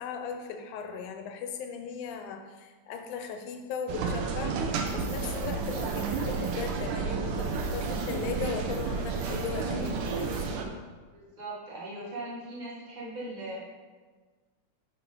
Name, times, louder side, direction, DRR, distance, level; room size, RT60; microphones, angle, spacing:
voice 1, 0.0-4.6 4.9-10.4, left 6 dB, 80° left, 5 dB, 2.1 m, -37 dB
sound 1, 3.9-10.6, right 4 dB, 80° right, 2.3 m, -31 dB
sound 2, 4.7-6.9 7.2-10.5, right 3 dB, 45° right, 1.8 m, -51 dB
voice 2, 11.1-13.7, right 1 dB, 65° right, -6 dB, 0.4 m, -39 dB
11.0 x 4.9 x 3.8 m, 1.4 s
omnidirectional pair, 3.6 m